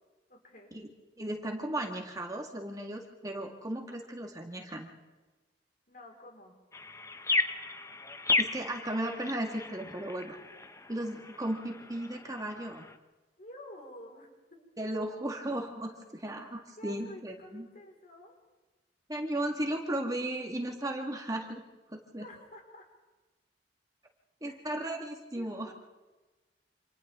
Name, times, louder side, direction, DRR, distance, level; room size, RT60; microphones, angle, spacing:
voice 1, 0.3-0.8 5.9-6.6 13.4-14.6 16.7-18.3 22.2-22.9 24.5-24.6 25.3-25.7, left 1 dB, 50° left, 0 dB, 4.8 m, -50 dB
voice 2, 1.2-4.9 8.4-10.4 10.9-12.8 14.8-17.7 19.1-21.6 21.9-22.2 24.4-25.7, right 1 dB, 20° right, 2 dB, 1.8 m, -35 dB
sound 1, 6.7-13.0, left 3 dB, 15° left, 0.9 m, -34 dB
28.5 x 27.0 x 3.7 m, 1.2 s
head